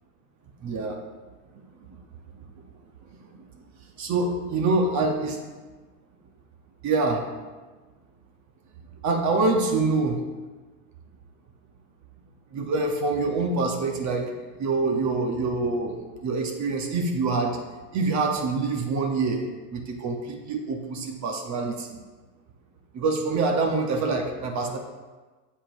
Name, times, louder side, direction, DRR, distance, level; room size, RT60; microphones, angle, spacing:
voice 1, 0.6-1.0 4.0-5.4 6.8-7.2 9.0-10.2 12.5-14.3 14.6-17.6 17.9-22.0 22.9-24.8, right 3 dB, 35° right, 3 dB, 1.0 m, -25 dB
8.5 x 7.4 x 2.7 m, 1.3 s
hypercardioid pair, 105°, 49 cm